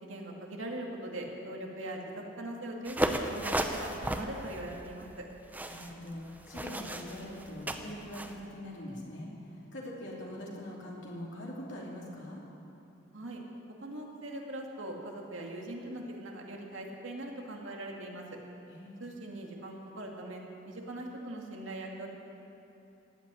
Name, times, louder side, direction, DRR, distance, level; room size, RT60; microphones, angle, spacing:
voice 1, 0.0-5.3 13.1-13.4 13.8-18.2 19.0-22.1, right 1 dB, 85° right, 0 dB, 2.3 m, -41 dB
sound 1, 2.9-8.3, right 1 dB, 10° right, 0.7 m, -35 dB
voice 2, 5.7-12.4 18.7-19.0, left 1 dB, 65° left, -4 dB, 2.9 m, -43 dB
16.0 x 8.6 x 9.8 m, 2.8 s
head